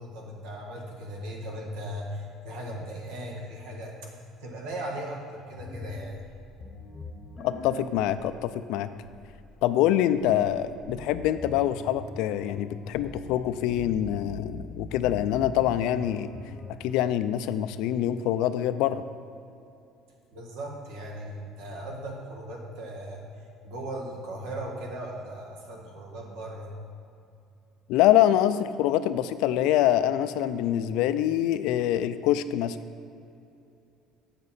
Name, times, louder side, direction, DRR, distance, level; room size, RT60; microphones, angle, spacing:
voice 1, 0.0-6.2 20.3-26.7, right 1 dB, 85° right, 0 dB, 1.4 m, -38 dB
sound 1, 5.6-16.9, left 3 dB, 25° left, 0.8 m, -43 dB
voice 2, 7.4-8.9 9.6-16.3 16.8-19.0 27.9-32.8, left 12 dB, 75° left, 13 dB, 0.3 m, -25 dB
7.9 x 6.7 x 4.2 m, 2.6 s
cardioid pair, 150°, 0 cm